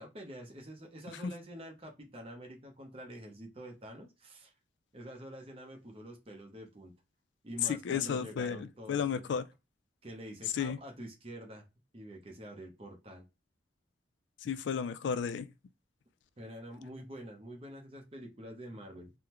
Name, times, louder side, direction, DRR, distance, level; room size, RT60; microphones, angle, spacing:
voice 1, 0.0-4.5 4.9-6.9 7.4-9.3 10.0-11.6 11.9-13.3 16.4-19.1, equal, 30° right, 0.7 m, -47 dB
voice 2, 7.9-9.4 10.6-10.8 14.4-15.5, left 6 dB, 75° left, 0.3 m, -33 dB
3.6 x 2.1 x 2.9 m
head